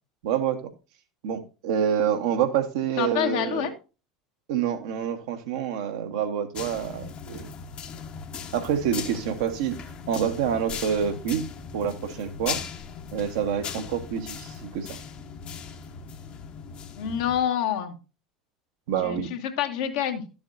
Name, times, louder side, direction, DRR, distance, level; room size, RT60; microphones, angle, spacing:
voice 1, 0.2-0.7 1.2-3.7 4.5-7.5 8.5-9.8 10.1-11.4 11.7-12.6 13.1-14.9 18.9-19.3, right 8 dB, 60° right, 1.3 m, -27 dB
voice 2, 3.0-3.7 17.0-17.9 19.0-20.2, left 9 dB, 60° left, 1.4 m, -27 dB
sound 1, 6.5-17.4, left 6 dB, 40° left, 1.2 m, -38 dB
12.0 x 7.1 x 2.6 m
figure-of-eight pair, 70°, 3 cm